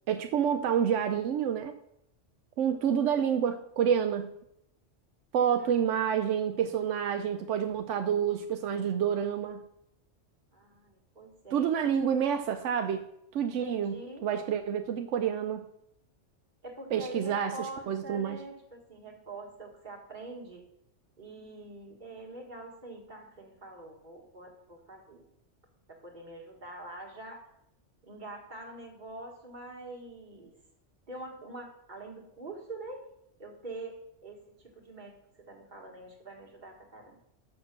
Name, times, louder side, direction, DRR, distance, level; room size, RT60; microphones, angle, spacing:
voice 1, 0.1-1.7 2.6-4.3 5.3-9.6 11.5-13.1 13.3-13.9 14.2-15.6 16.9-18.4, right 8 dB, 85° right, 7 dB, 0.9 m, -28 dB
voice 2, 5.6-6.0 6.6-6.8 10.5-11.7 13.5-14.3 16.6-20.7 21.2-25.3 25.9-27.5 28.0-30.5 31.1-33.1 33.4-37.2, right 2 dB, 40° right, 0 dB, 1.8 m, -45 dB
6.7 x 6.3 x 5.9 m, 0.77 s
omnidirectional pair, 1.2 m